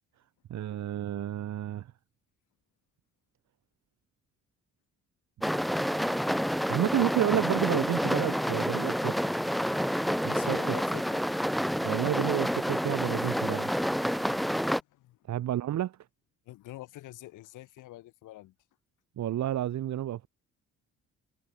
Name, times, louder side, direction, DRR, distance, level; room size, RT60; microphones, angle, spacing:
voice 1, 0.5-1.9 6.7-9.1 10.2-10.6 11.8-13.7 15.3-16.0 19.2-20.3, right 12 dB, 65° right, 1.5 m, -30 dB
sound 1, 5.4-14.8, equal, ahead, 0.4 m, -29 dB
voice 2, 10.3-11.2 13.9-15.2 16.5-18.5, left 16 dB, 90° left, 2.7 m, -46 dB
cardioid pair, 90°, 30 cm